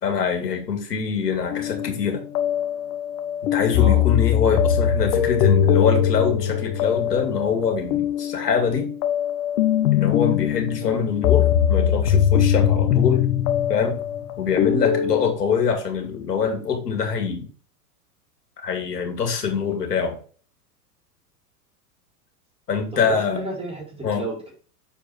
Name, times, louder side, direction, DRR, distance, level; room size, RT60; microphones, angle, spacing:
voice 1, 0.0-2.2 3.4-8.9 9.9-13.2 13.7-14.0 14.4-17.5 18.6-20.2 22.7-23.4 24.0-24.2, left 6 dB, 85° left, 4 dB, 2.3 m, -24 dB
sound 1, 1.5-15.3, left 9 dB, 60° left, 1.3 m, -21 dB
voice 2, 22.9-24.5, right 1 dB, 10° right, -2 dB, 3.6 m, -32 dB
7.1 x 4.7 x 4.6 m, 0.40 s
hypercardioid pair, 105°, 47 cm